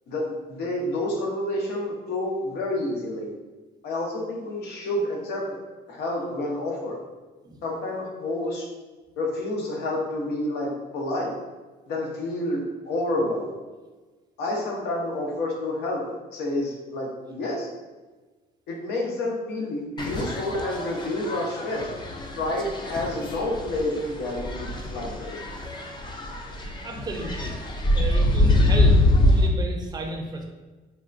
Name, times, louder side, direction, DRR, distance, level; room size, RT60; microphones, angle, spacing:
voice 1, 0.1-3.3 3.8-5.6 5.9-7.0 7.6-8.7 9.2-11.3 11.9-13.5 14.4-17.7 18.7-21.9 22.4-25.4, left 1 dB, 75° left, -1 dB, 0.8 m, -29 dB
sound 1, 20.0-29.5, left 1 dB, 25° left, 0.4 m, -24 dB
voice 2, 26.8-27.5 27.9-30.4, right 2 dB, 25° right, 1 dB, 0.5 m, -33 dB
3.5 x 2.2 x 2.5 m, 1.3 s
cardioid pair, 110°, 17 cm